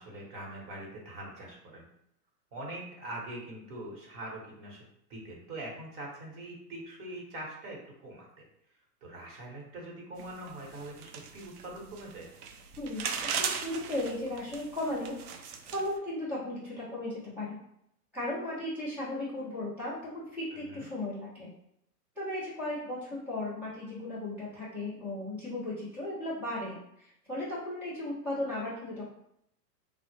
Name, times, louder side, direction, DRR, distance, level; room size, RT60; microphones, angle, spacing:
voice 1, 0.0-1.8 2.5-4.8 5.1-8.4 9.0-12.3 20.5-20.9, right 1 dB, 25° right, -2 dB, 0.9 m, -43 dB
sound 1, 10.2-16.0, right 6 dB, 70° right, 0.6 m, -38 dB
voice 2, 12.8-15.1 15.7-17.6 18.1-21.5 22.2-26.8 27.3-29.0, left 1 dB, 5° right, -10 dB, 0.4 m, -36 dB
3.9 x 2.0 x 3.1 m, 0.74 s
hypercardioid pair, 145°, 48 cm